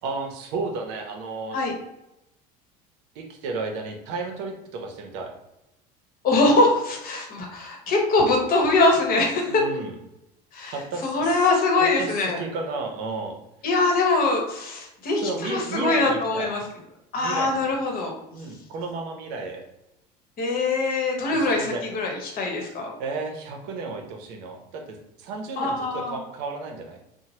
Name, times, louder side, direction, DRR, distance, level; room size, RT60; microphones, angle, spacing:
voice 1, 0.0-1.6 3.1-5.4 9.5-9.9 10.7-11.5 12.0-13.4 15.2-16.5 17.2-17.8 18.3-19.6 21.3-21.8 23.0-27.1, right 3 dB, 65° right, 3 dB, 0.6 m, -33 dB
voice 2, 6.2-9.6 10.5-10.8 11.0-12.4 13.6-16.6 17.1-18.1 20.4-22.9 25.6-26.2, left 2 dB, 45° left, 1 dB, 0.9 m, -22 dB
2.9 x 2.1 x 2.8 m, 0.87 s
hypercardioid pair, 85°, 20 cm